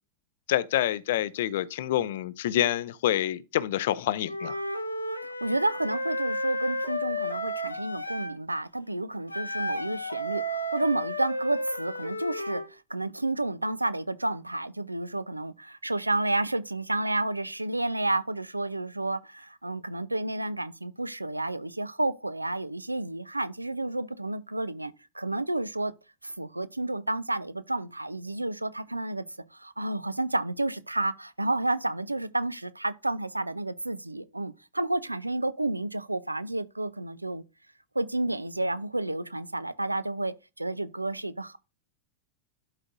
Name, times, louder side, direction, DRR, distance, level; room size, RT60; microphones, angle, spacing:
voice 1, 0.5-4.6, left 12 dB, 55° left, 0.5 m, -27 dB
Wind instrument woodwind instrument, 4.3-8.3 9.3-12.7, equal, 90° left, 0.9 m, -32 dB
voice 2, 5.2-25.9 26.2-29.2 29.5-37.4 37.9-41.6, right 2 dB, 85° right, 0.5 m, -31 dB
11.5 x 4.8 x 2.5 m
figure-of-eight pair, 90°, 0 cm